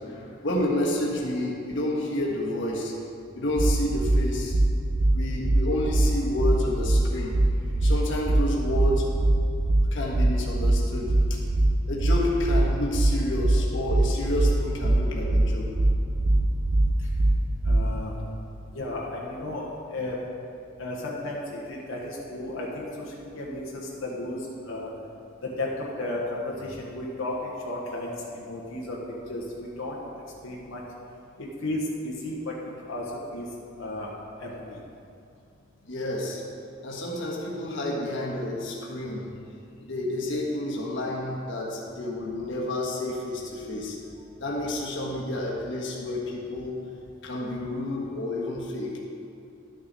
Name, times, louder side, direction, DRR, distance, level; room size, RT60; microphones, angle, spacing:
voice 1, 0.1-2.9 3.3-4.5 5.1-7.4 7.8-9.1 9.9-11.2 11.9-15.7 35.9-36.4 36.8-39.3 39.8-44.0 44.4-46.8 47.2-49.0, left 1 dB, 65° left, -3 dB, 1.4 m, -30 dB
sound 1, 3.6-18.0, right 1 dB, 55° right, 0.6 m, -22 dB
voice 2, 16.2-16.6 17.0-17.1 17.6-18.2 18.7-20.2 20.8-24.9 25.4-29.0 29.3-30.0 30.4-30.8 31.4-33.0 33.3-33.5 33.8-34.1 34.4-34.8, left 1 dB, 85° left, -4 dB, 1.2 m, -34 dB
12.0 x 6.4 x 4.1 m, 2.6 s
head